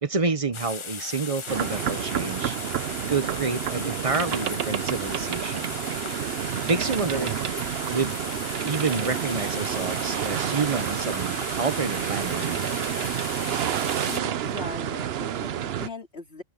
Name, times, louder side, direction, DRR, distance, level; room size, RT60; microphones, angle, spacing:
voice 1, 0.0-2.6 3.1-5.8 6.7-7.4 7.9-8.1 8.6-12.7, right 4 dB, 35° right, 1.1 m, -28 dB
sound 1, 0.5-14.2, left 5 dB, 35° left, 0.7 m, -37 dB
sound 2, 1.5-15.9, right 10 dB, 80° right, 0.9 m, -29 dB
sound 3, 2.9-12.4, left 1 dB, 20° left, 5.1 m, -57 dB
voice 2, 14.1-16.4, left 3 dB, 75° left, 3.5 m, -39 dB
open air
omnidirectional pair, 1.0 m